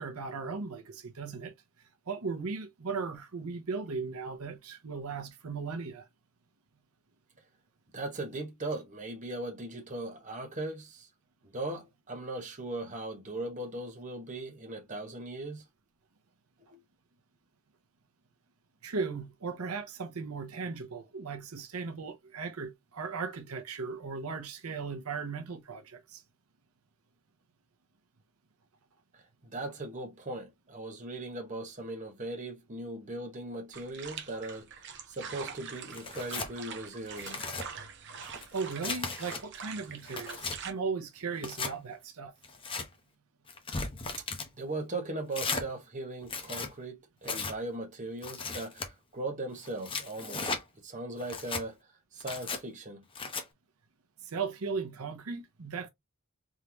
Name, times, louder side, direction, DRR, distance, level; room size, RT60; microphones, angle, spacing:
voice 1, 0.0-1.5 2.1-6.1 18.8-26.2 38.5-42.3 54.2-55.9, right 4 dB, 90° right, 0.8 m, -37 dB
voice 2, 7.9-11.1 11.4-15.6 16.7-16.8 29.1-37.4 44.6-50.5 50.8-51.8 52.1-53.0, right 2 dB, 35° right, 1.2 m, -39 dB
sound 1, 33.7-40.7, right 6 dB, 55° right, 0.8 m, -44 dB
Tearing, 35.9-36.5 37.1-37.7 38.2-39.4 39.9-40.6 41.4-41.7 42.4-42.9 43.5-44.5 45.3-45.7 46.2-46.7 47.2-47.6 48.2-48.9 49.6-50.6 51.2-51.6 52.2-52.6 53.2-53.4, left 4 dB, 25° left, 0.8 m, -36 dB
3.7 x 3.2 x 2.9 m
head